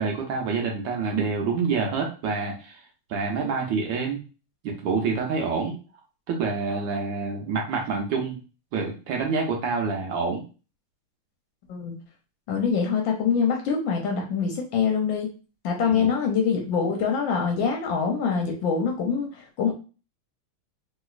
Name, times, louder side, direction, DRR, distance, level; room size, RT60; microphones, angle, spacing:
voice 1, 0.0-2.8 3.1-4.2 4.6-5.8 6.3-8.4 8.7-10.4 15.8-16.1, right 4 dB, 75° right, 1 dB, 1.2 m, -27 dB
voice 2, 12.5-15.3 15.6-19.7, left 6 dB, 70° left, 1 dB, 1.2 m, -24 dB
3.2 x 2.9 x 2.4 m, 0.35 s
omnidirectional pair, 2.4 m